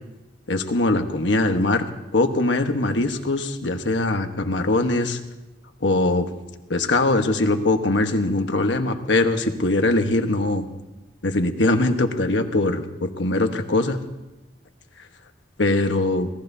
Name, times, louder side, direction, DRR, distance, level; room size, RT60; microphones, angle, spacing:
voice 1, 0.5-1.9 2.1-5.2 5.8-6.3 6.7-10.7 11.2-14.0 15.6-16.3, left 2 dB, 75° left, 6 dB, 1.3 m, -21 dB
26.0 x 18.0 x 2.7 m, 1.1 s
head